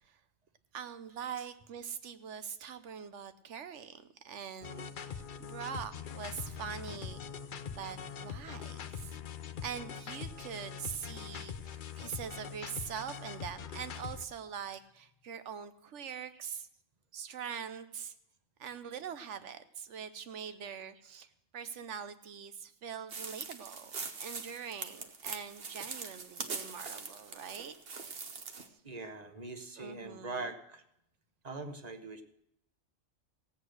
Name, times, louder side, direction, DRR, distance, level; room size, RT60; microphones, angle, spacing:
voice 1, 0.7-7.2 7.7-9.2 9.6-16.7 17.1-18.1 18.6-21.3 21.5-23.9 24.2-27.7 28.5-28.7 29.8-30.5, right 7 dB, 80° right, 11 dB, 1.2 m, -43 dB
sound 1, 4.6-14.2, left 7 dB, 50° left, 0.7 m, -43 dB
sound 2, 6.3-15.2, left 4 dB, 15° right, 1.5 m, -59 dB
sound 3, 23.1-28.7, right 5 dB, 55° right, 1.2 m, -42 dB
voice 2, 28.8-30.8 31.4-32.2, right 3 dB, 35° right, 7 dB, 1.1 m, -42 dB
16.5 x 8.2 x 6.4 m, 0.77 s
omnidirectional pair, 1.2 m